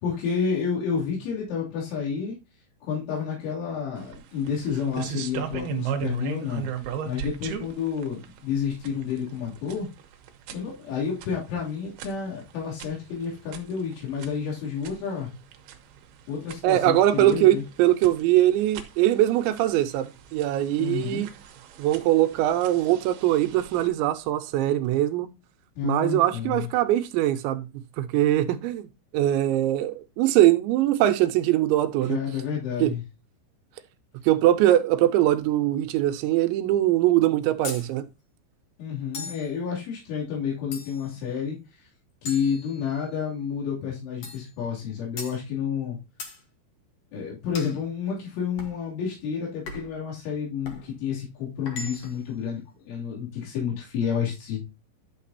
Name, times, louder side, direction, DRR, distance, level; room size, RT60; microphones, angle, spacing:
voice 1, 0.0-2.3 2.8-6.7 7.1-9.9 10.5-15.3 16.3-17.6 20.8-21.3 25.8-26.7 32.0-33.0 38.8-41.6 42.2-46.0 47.1-54.6, left 7 dB, 90° left, 5.3 m, -30 dB
sound 1, 4.0-23.9, right 9 dB, 70° right, 2.6 m, -39 dB
voice 2, 16.6-21.3 21.8-25.3 25.8-27.7 28.0-28.9 29.1-32.2 32.8-32.9 34.2-38.1, right 13 dB, 85° right, 3.0 m, -22 dB
sound 2, 37.6-37.9 39.1-39.5 40.7-41.2 42.3-43.2 44.2-44.5 45.2-45.4 46.2-46.4 47.5-47.8 48.6-48.8 49.7-50.0 50.6-50.9 51.7-52.3, left 3 dB, 70° left, 1.5 m, -38 dB
11.5 x 6.6 x 2.8 m
omnidirectional pair, 5.3 m